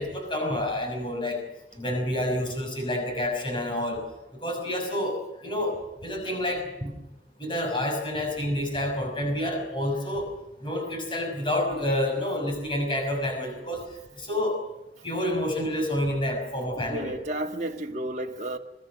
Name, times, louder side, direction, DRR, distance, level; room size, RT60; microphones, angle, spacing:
voice 1, 0.0-1.4 1.8-4.0 4.3-6.9 7.4-10.3 10.6-13.8 14.1-14.6 15.0-17.2, left 1 dB, 30° left, 5.9 m, -28 dB
voice 2, 16.8-18.6, right 1 dB, 40° right, 1.7 m, -32 dB
26.0 x 21.0 x 6.4 m
head